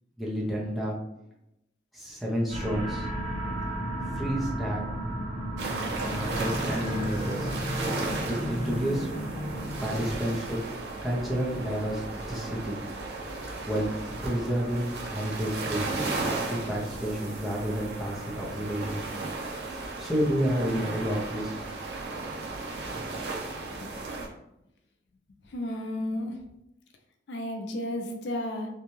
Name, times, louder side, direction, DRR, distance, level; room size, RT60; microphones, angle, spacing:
voice 1, 0.2-1.0 1.9-3.1 4.2-4.8 6.0-7.5 8.2-9.1 9.8-10.6 11.0-12.0 12.3-12.8 13.7-13.9 14.2-15.9 16.2-19.0 20.0-21.6, equal, ahead, -4 dB, 0.6 m, -30 dB
sound 1, 2.5-10.0, equal, 50° right, 1.3 m, -33 dB
sound 2, 5.6-24.3, right 3 dB, 70° right, 0.5 m, -35 dB
voice 2, 25.5-26.4 27.3-28.7, left 1 dB, 80° left, 3 dB, 0.5 m, -32 dB
2.6 x 2.2 x 3.0 m, 0.84 s
head